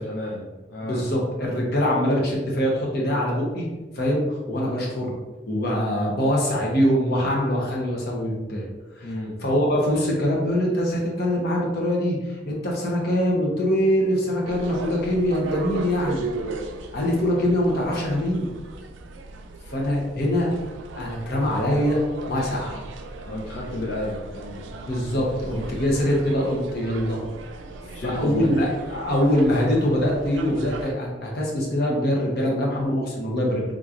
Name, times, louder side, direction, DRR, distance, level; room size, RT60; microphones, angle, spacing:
voice 1, 0.0-1.1 9.0-9.4 23.3-24.8 27.9-28.6, left 1 dB, 75° left, -4 dB, 0.5 m, -32 dB
voice 2, 0.8-3.7 3.9-5.1 5.5-8.7 9.0-9.1 9.4-16.3 16.9-18.5 19.7-20.5 20.9-22.0 22.3-22.8 24.9-27.2 28.0-33.6, equal, 55° left, -2 dB, 0.9 m, -23 dB
sound 1, 14.4-30.9, right 3 dB, 75° right, 0.3 m, -37 dB
3.7 x 3.0 x 2.5 m, 1.2 s
head